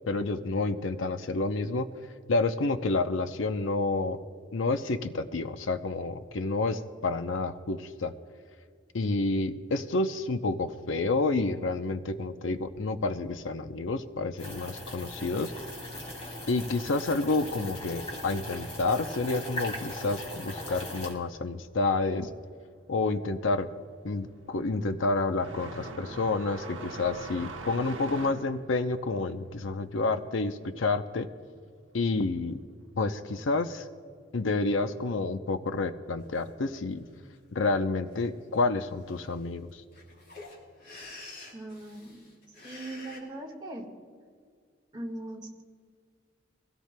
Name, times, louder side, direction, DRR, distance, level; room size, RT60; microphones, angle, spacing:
voice 1, 0.1-1.9 2.3-4.2 4.5-8.1 8.9-15.5 16.5-22.3 22.9-23.7 24.0-31.3 31.9-32.6 32.9-33.9 34.3-37.0 37.5-39.7, left 3 dB, 75° left, 9 dB, 0.6 m, -29 dB
sound 1, 14.4-21.1, left 1 dB, 30° left, 2.5 m, -39 dB
sound 2, 22.8-23.1 23.4-31.7 32.0-33.1 34.1-34.2 35.0-35.1 36.8-36.9, right 2 dB, 75° right, 1.1 m, -43 dB
sound 3, 36.3-36.4 36.9-37.4 38.0-38.3 38.5-38.6 38.8-43.2, left 2 dB, 50° left, 3.8 m, -48 dB
voice 2, 41.5-42.2 42.6-43.9 44.9-45.6, right 1 dB, 20° right, 0 dB, 1.6 m, -40 dB
23.0 x 16.5 x 2.2 m, 2.1 s
head